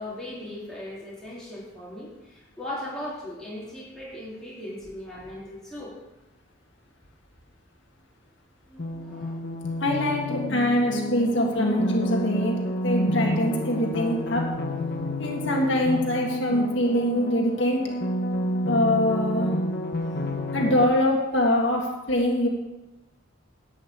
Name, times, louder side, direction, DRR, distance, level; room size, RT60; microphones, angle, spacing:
voice 1, 0.0-5.9 8.7-9.8, left 1 dB, 5° left, -8 dB, 3.4 m, -38 dB
sound 1, 8.8-20.8, equal, 50° left, 1.0 m, -29 dB
voice 2, 9.8-12.6 12.8-14.5 15.2-17.9 18.6-19.5 20.5-22.5, left 1 dB, 65° left, 0 dB, 1.7 m, -24 dB
11.5 x 5.6 x 8.6 m, 1.0 s
head